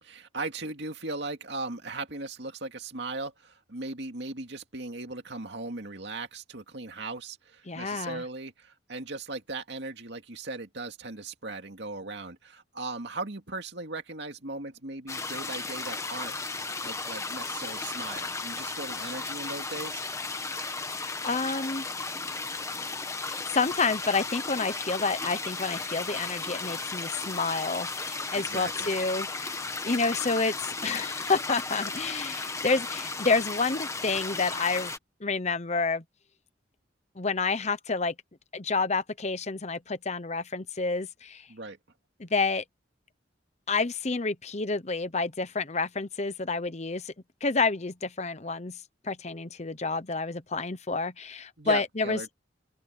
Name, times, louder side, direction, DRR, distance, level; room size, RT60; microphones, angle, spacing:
voice 1, 0.0-16.3 16.8-20.0 28.3-28.9 41.5-41.8 51.6-52.3, right 3 dB, 65° right, 2.4 m, -38 dB
voice 2, 7.7-8.2 20.9-21.8 23.5-34.9 35.2-36.0 37.2-38.1 38.5-41.5 42.2-42.6 43.7-47.1 47.4-48.8 49.0-52.2, left 4 dB, 35° left, 0.9 m, -29 dB
sound 1, 15.1-35.0, left 3 dB, 15° left, 1.3 m, -35 dB
open air
head